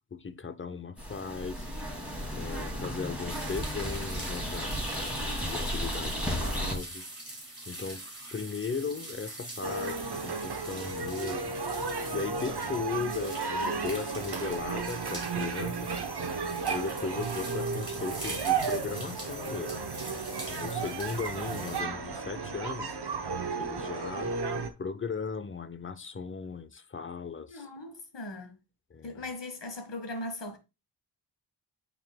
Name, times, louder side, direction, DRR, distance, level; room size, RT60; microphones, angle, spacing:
voice 1, 0.0-1.7 2.4-4.7 5.0-7.1 7.7-8.0 8.3-11.6 12.1-16.0 16.7-19.8 20.5-23.0 23.6-24.4 24.8-27.7 28.9-29.2, left 5 dB, 30° left, 0.6 m, -37 dB
sound 1, 1.0-6.8, equal, 5° right, 2.4 m, -34 dB
sound 2, 3.3-21.8, right 1 dB, 25° right, 2.3 m, -44 dB
sound 3, 9.6-24.7, right 5 dB, 60° right, 0.9 m, -33 dB
voice 2, 27.5-28.6 29.0-30.6, left 2 dB, 65° left, 1.7 m, -39 dB
8.9 x 4.7 x 2.2 m
wide cardioid pair, 75°, 46 cm